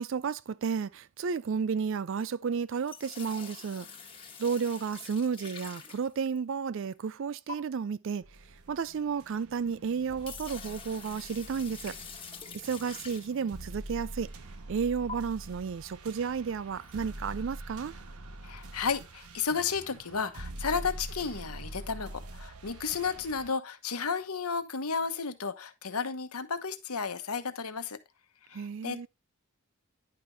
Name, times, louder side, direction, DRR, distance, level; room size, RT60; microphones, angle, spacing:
voice 1, 0.0-3.9 4.4-8.2 8.7-12.0 12.6-14.3 14.7-17.9 28.5-29.1, right 6 dB, 60° right, 0.4 m, -32 dB
sound 1, 2.7-6.6 7.5-7.6 9.6-9.7 10.0-13.7 14.2-14.4 15.1-15.2 16.7-17.0, left 5 dB, 25° left, 1.4 m, -46 dB
sound 2, 8.2-23.5, right 1 dB, 80° right, 1.2 m, -45 dB
voice 2, 18.4-28.0 28.5-29.1, left 5 dB, 80° left, 1.1 m, -33 dB
10.5 x 5.8 x 3.4 m
head